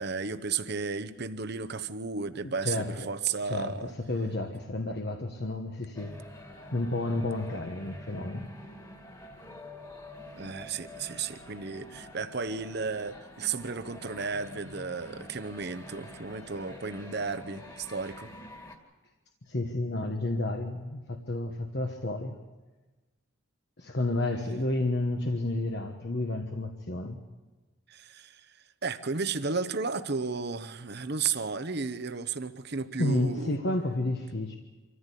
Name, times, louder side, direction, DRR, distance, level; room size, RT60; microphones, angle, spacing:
voice 1, 0.0-3.9 10.4-18.3 27.9-28.5 28.8-33.6, right 5 dB, 50° right, 11 dB, 1.0 m, -33 dB
voice 2, 2.6-3.1 3.4-6.1 6.7-8.5 19.5-22.4 23.8-27.2 33.0-34.5, left 2 dB, 55° left, 4 dB, 1.3 m, -31 dB
sound 1, 5.9-18.8, left 1 dB, 20° left, 2.1 m, -47 dB
26.0 x 14.5 x 8.4 m, 1.2 s
head